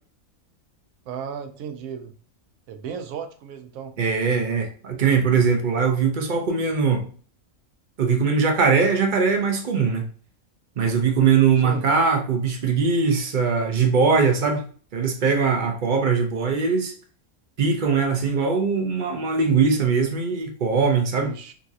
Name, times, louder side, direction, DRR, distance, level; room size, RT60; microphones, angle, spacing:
voice 1, 1.1-2.1 2.7-3.9 11.6-11.8 21.1-21.5, right 7 dB, 70° right, 1.0 m, -35 dB
voice 2, 4.0-7.1 8.0-10.0 10.8-14.6 14.9-16.9 17.6-21.3, right 5 dB, 55° right, 0.5 m, -21 dB
3.9 x 2.4 x 2.6 m
omnidirectional pair, 1.5 m